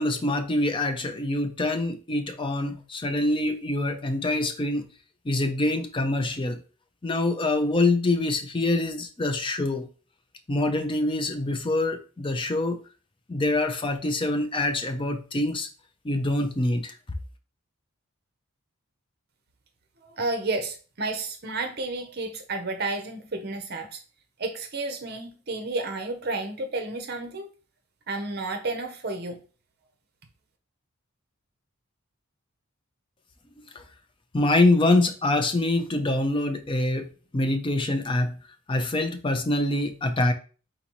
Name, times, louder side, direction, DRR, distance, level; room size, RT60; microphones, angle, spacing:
voice 1, 0.0-4.9 5.3-6.6 7.0-9.9 10.5-12.8 13.3-15.7 16.0-16.9 34.3-38.4 38.7-40.3, left 2 dB, 20° left, 0.4 m, -25 dB
voice 2, 20.0-24.0 24.4-27.5 28.1-29.4, right 2 dB, 45° right, 0.7 m, -31 dB
4.0 x 3.8 x 3.0 m
head